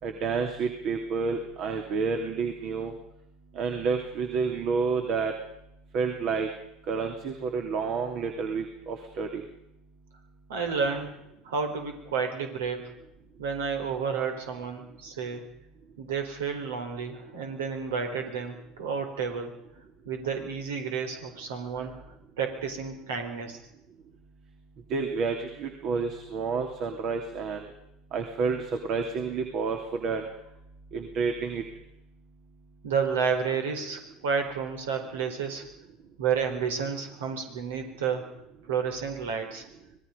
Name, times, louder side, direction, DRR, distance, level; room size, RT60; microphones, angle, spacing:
voice 1, 0.0-2.9 3.5-5.3 5.9-6.5 6.9-9.4 24.9-27.6 28.1-30.3 30.9-31.6, right 5 dB, 55° right, 4 dB, 2.9 m, -29 dB
voice 2, 10.5-11.1 11.4-12.9 13.4-15.4 16.0-19.5 20.1-22.0 22.4-23.6 32.8-35.6 36.2-38.2 38.7-39.7, right 6 dB, 75° right, 4 dB, 4.5 m, -31 dB
26.0 x 20.0 x 5.3 m, 0.82 s
hypercardioid pair, 75°, 0 cm